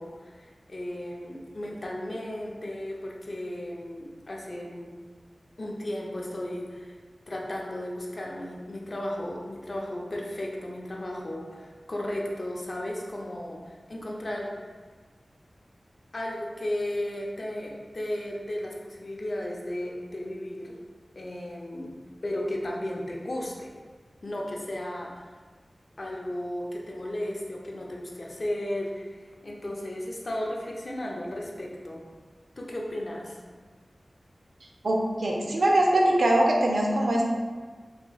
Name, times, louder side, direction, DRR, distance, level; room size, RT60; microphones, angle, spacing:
voice 1, 0.0-4.9 5.6-7.0 7.3-14.5 16.1-20.8 21.2-21.9 22.2-23.7 24.2-25.3 26.0-32.0 32.6-33.4, left 1 dB, 55° left, -2 dB, 0.6 m, -34 dB
voice 2, 34.8-37.2, right 1 dB, 80° right, -1 dB, 0.5 m, -22 dB
4.1 x 2.9 x 2.3 m, 1.5 s
wide cardioid pair, 65°, 0 cm